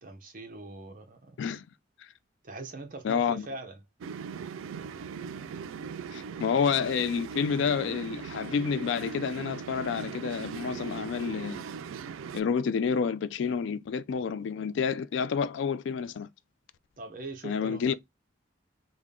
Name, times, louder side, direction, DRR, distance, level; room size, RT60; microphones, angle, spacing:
voice 1, 0.0-1.4 2.4-3.8 17.0-17.9, right 2 dB, 40° right, 0.7 m, -42 dB
voice 2, 3.0-3.4 6.1-11.7 12.3-16.3 17.4-17.9, left 6 dB, 70° left, 0.3 m, -29 dB
sound 1, 4.0-12.4, right 6 dB, 90° right, 0.3 m, -39 dB
3.6 x 2.1 x 3.5 m
head